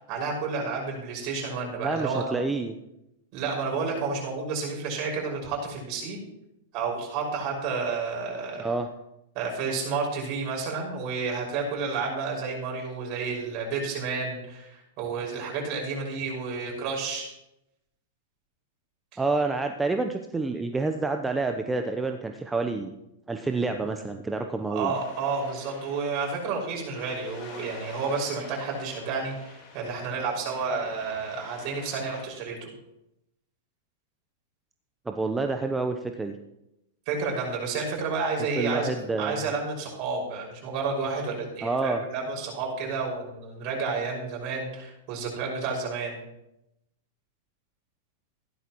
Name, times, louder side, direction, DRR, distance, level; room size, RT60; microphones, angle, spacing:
voice 1, 0.1-2.4 3.3-6.2 6.7-8.7 9.3-17.3 19.1-19.2 24.7-32.7 37.1-46.2, right 4 dB, 45° right, -1 dB, 5.7 m, -31 dB
voice 2, 1.8-2.7 8.6-8.9 19.2-22.9 23.3-24.9 35.1-36.3 38.6-39.5 41.6-42.0, right 3 dB, 10° right, 5 dB, 0.8 m, -28 dB
sound 1, 24.9-32.3, left 4 dB, 40° left, 3.9 m, -48 dB
15.5 x 12.5 x 3.1 m, 0.87 s
hypercardioid pair, 110°, 0 cm